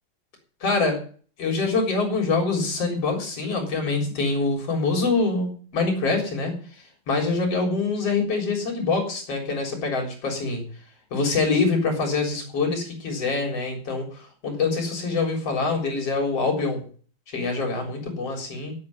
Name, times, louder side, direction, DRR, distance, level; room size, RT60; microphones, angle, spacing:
voice 1, 0.6-1.0 1.4-6.6 7.1-10.7 11.1-16.8 17.3-18.7, left 3 dB, 40° left, 2 dB, 4.6 m, -25 dB
9.7 x 8.5 x 8.7 m, 0.43 s
omnidirectional pair, 4.4 m